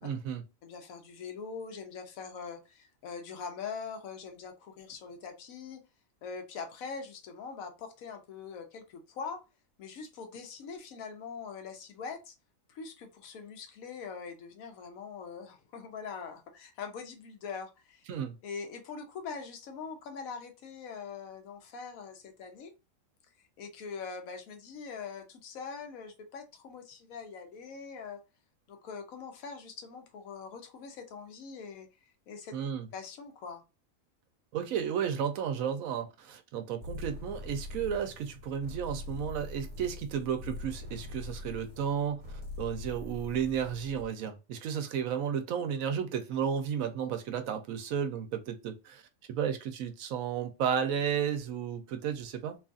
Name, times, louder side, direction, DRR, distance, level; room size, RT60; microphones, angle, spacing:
voice 1, 0.0-0.4 18.1-18.4 32.5-32.9 34.5-42.2 42.6-49.0 49.3-52.6, right 8 dB, 80° right, 1.0 m, -33 dB
voice 2, 0.6-5.8 6.2-9.4 9.8-12.3 12.7-18.0 18.4-22.7 23.6-28.2 28.7-31.9 32.3-32.5 32.9-33.6, left 5 dB, 90° left, 1.1 m, -43 dB
sound 1, 36.8-44.1, left 2 dB, 30° right, 1.0 m, -43 dB
3.0 x 2.4 x 2.5 m
omnidirectional pair, 1.4 m